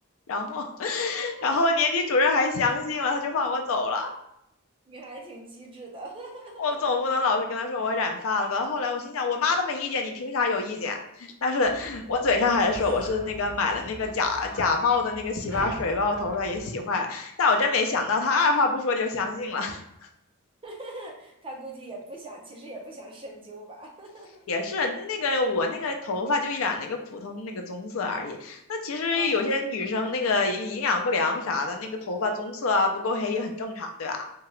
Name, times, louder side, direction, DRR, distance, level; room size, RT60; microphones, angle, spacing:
voice 1, 0.3-4.1 6.6-19.8 24.5-34.2, left 3 dB, 70° left, 3 dB, 0.5 m, -26 dB
voice 2, 1.2-1.5 4.9-6.6 12.1-12.2 20.6-24.5 29.1-29.6, right 1 dB, 25° right, -1 dB, 0.6 m, -42 dB
sound 1, 11.6-16.7, equal, 10° right, 1.1 m, -42 dB
2.8 x 2.3 x 3.1 m, 0.79 s
head